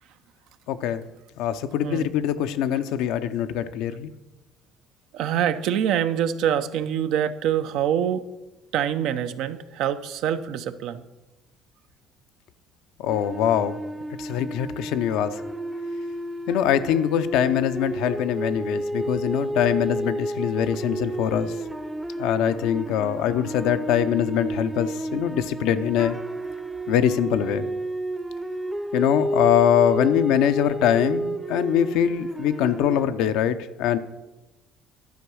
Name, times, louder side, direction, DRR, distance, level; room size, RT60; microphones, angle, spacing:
voice 1, 0.7-1.0 1.4-4.1 13.0-13.8 14.2-15.4 16.5-21.6 22.2-26.2 26.9-27.7 28.9-34.0, left 10 dB, 80° left, 10 dB, 0.6 m, -23 dB
voice 2, 5.1-8.3 8.7-11.0, right 9 dB, 75° right, 11 dB, 0.5 m, -25 dB
sound 1, 13.1-33.1, right 1 dB, 10° right, 0.6 m, -31 dB
12.0 x 4.6 x 6.2 m, 1.1 s
supercardioid pair, 80°, 0 cm